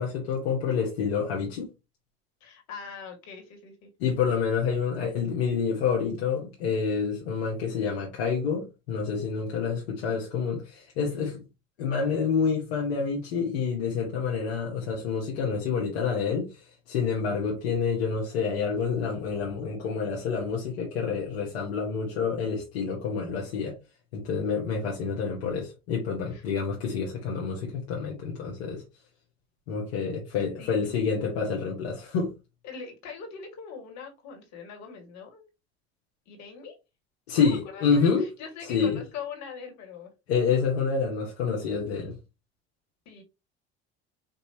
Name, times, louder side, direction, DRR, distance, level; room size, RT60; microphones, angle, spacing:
voice 1, 0.0-1.7 4.0-11.4 11.8-16.6 16.9-23.8 24.1-28.8 29.7-32.3 37.3-38.2 38.7-39.0 40.3-42.1, left 5 dB, 80° left, 1.3 m, -28 dB
voice 2, 2.4-3.9 26.3-26.4 30.6-30.8 32.6-35.4 36.3-36.8 37.3-40.1 43.1-43.2, left 6 dB, 65° left, 2.0 m, -42 dB
5.3 x 2.7 x 2.8 m
hypercardioid pair, 65°, 30 cm